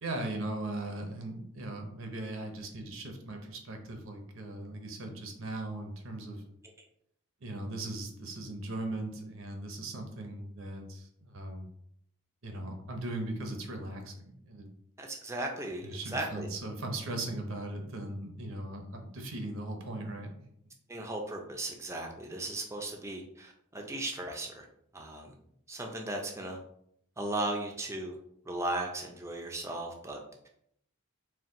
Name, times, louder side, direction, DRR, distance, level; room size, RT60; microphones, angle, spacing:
voice 1, 0.0-6.4 7.4-11.7 12.4-14.7 15.8-20.3, right 2 dB, 65° right, 4 dB, 0.7 m, -38 dB
voice 2, 15.0-16.5 20.9-24.7 24.9-25.3 25.7-26.6 27.2-28.2 28.5-30.2, right 2 dB, 15° right, 1 dB, 0.5 m, -36 dB
4.3 x 2.3 x 3.7 m, 0.72 s
head